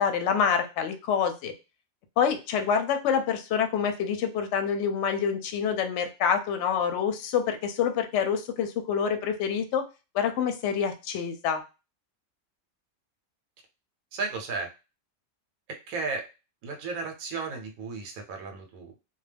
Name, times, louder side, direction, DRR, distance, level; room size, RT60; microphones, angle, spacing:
voice 1, 0.0-1.5 2.2-9.8 10.1-11.6, left 7 dB, 65° left, 6 dB, 0.8 m, -26 dB
voice 2, 14.1-14.7 15.9-16.3 16.6-18.9, right 4 dB, 80° right, 3 dB, 1.0 m, -34 dB
2.3 x 2.2 x 3.3 m, 0.29 s
omnidirectional pair, 1.4 m